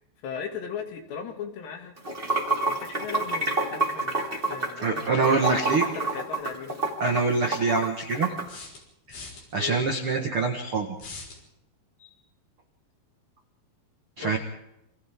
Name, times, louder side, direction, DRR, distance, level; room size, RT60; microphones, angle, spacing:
voice 1, 0.2-2.0 2.7-6.8 9.6-9.8 14.2-14.4, left 7 dB, 70° left, 3 dB, 4.7 m, -37 dB
Water / Sink (filling or washing), 2.0-8.4, right 3 dB, 15° right, 2.0 m, -28 dB
voice 2, 4.8-5.8 7.0-8.3 9.1-9.2 9.5-10.9 14.2-14.4, right 4 dB, 75° right, 4 dB, 1.2 m, -25 dB
sound 1, 8.5-9.4 11.0-11.4, left 3 dB, 55° left, 6.4 m, -41 dB
29.0 x 25.5 x 3.8 m, 0.84 s
omnidirectional pair, 5.2 m